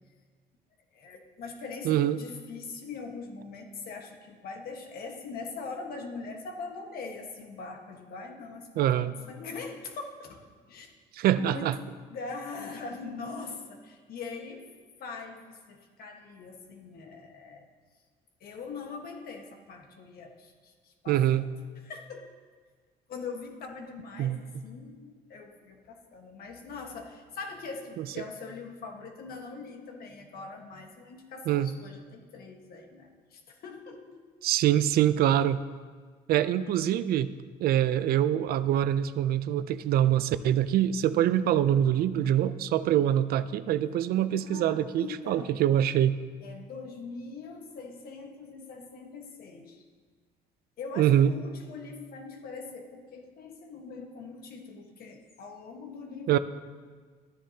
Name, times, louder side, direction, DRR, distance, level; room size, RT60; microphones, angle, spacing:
voice 1, 0.9-10.4 10.7-10.9 11.4-11.7 12.1-14.7 15.0-17.7 18.4-21.5 21.8-22.3 23.1-34.2 44.4-45.6 46.4-49.8 50.8-56.4, left 4 dB, 65° left, 3 dB, 1.4 m, -42 dB
voice 2, 1.9-2.2 8.8-9.1 11.1-11.8 21.1-21.5 24.2-24.4 28.0-28.1 31.5-31.7 34.4-35.6 36.3-37.3 37.6-46.2 51.0-51.3 56.3-56.4, right 11 dB, 65° right, 14 dB, 0.4 m, -24 dB
13.0 x 10.0 x 2.8 m, 1.5 s
cardioid pair, 110°, 17 cm